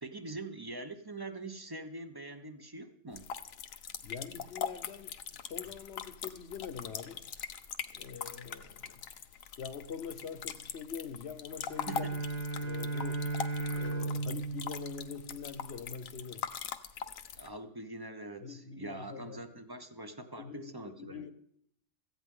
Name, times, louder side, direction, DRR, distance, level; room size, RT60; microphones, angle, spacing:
voice 1, 0.0-3.3 11.9-12.1 17.4-21.3, right 2 dB, 20° right, 0.8 m, -44 dB
sound 1, 3.1-17.5, left 8 dB, 75° left, 1.2 m, -42 dB
voice 2, 4.0-7.3 7.9-9.0 9.6-12.1 12.6-13.3 13.7-16.5 18.4-19.4 20.4-21.3, left 6 dB, 55° left, 1.1 m, -44 dB
Bowed string instrument, 11.6-15.7, right 3 dB, 80° right, 7.3 m, -36 dB
16.5 x 15.0 x 3.8 m
omnidirectional pair, 1.4 m